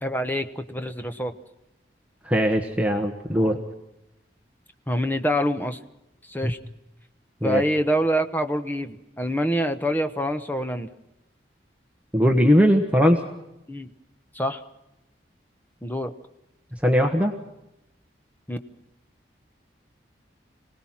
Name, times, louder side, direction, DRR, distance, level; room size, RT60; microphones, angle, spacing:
voice 1, 0.0-1.3 4.9-5.8 6.3-6.6 7.4-10.9 13.7-13.9 14.3-14.6 15.8-16.1 18.5-18.6, equal, 10° left, 8 dB, 1.1 m, -26 dB
voice 2, 2.2-3.6 6.4-6.5 7.4-7.6 12.1-13.2 16.8-17.3, equal, 5° right, 2 dB, 1.3 m, -19 dB
27.0 x 18.5 x 5.9 m, 0.89 s
head